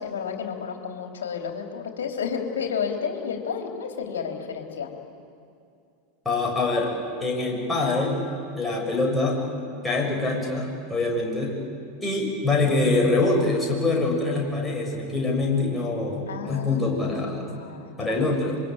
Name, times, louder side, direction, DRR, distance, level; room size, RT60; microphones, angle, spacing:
voice 1, 0.0-4.9 16.3-18.5, left 6 dB, 65° left, 3 dB, 3.6 m, -32 dB
voice 2, 6.2-6.9 7.2-8.2 8.5-9.4 9.8-11.6 12.0-17.5 18.0-18.6, left 3 dB, 10° left, -1 dB, 6.8 m, -24 dB
26.5 x 23.5 x 9.2 m, 2.4 s
figure-of-eight pair, 85°, 0 cm